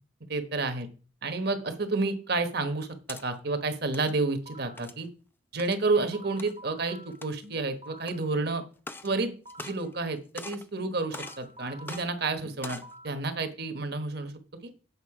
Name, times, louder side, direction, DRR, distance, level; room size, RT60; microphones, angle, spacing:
voice 1, 0.3-0.9 1.2-5.1 5.5-8.6 9.0-10.2 10.4-14.7, right 3 dB, 50° right, 8 dB, 1.2 m, -30 dB
sound 1, 2.8-3.2 3.8-4.1 4.8-5.1 5.6-5.8 6.4-6.5 7.1-7.5 8.0-8.1 8.8-9.1 9.5-10.1 10.4-10.7 11.1-11.4 11.9-12.0 12.5-12.9, left 2 dB, 10° left, 0.4 m, -42 dB
sound 2, 4.5-4.9 5.7-8.3 9.1-9.9 10.7-13.3, equal, 30° right, 0.9 m, -50 dB
8.3 x 6.4 x 4.9 m, 0.38 s
head